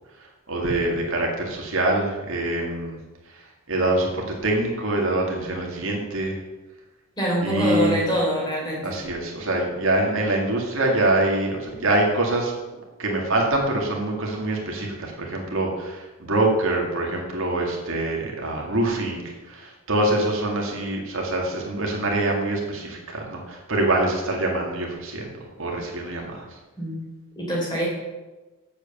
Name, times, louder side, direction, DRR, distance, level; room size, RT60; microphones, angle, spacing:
voice 1, 0.2-3.0 3.3-6.4 7.4-8.0 8.8-12.5 13.0-26.5, right 1 dB, 60° right, 0 dB, 2.0 m, -25 dB
voice 2, 7.2-9.0 26.8-27.0 27.4-27.9, equal, 20° left, -4 dB, 3.7 m, -24 dB
8.0 x 7.2 x 7.1 m, 1.1 s
head